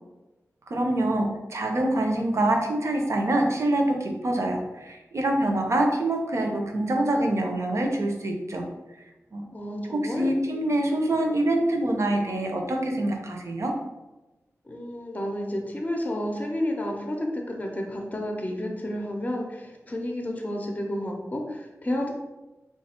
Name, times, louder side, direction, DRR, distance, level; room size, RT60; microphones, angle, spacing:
voice 1, 0.7-8.6 9.3-9.5 9.9-13.7, right 1 dB, 55° right, 3 dB, 0.6 m, -25 dB
voice 2, 9.5-10.2 14.7-22.1, left 1 dB, 25° left, 1 dB, 0.6 m, -31 dB
3.2 x 2.3 x 4.2 m, 1.1 s
wide cardioid pair, 95°, 6 cm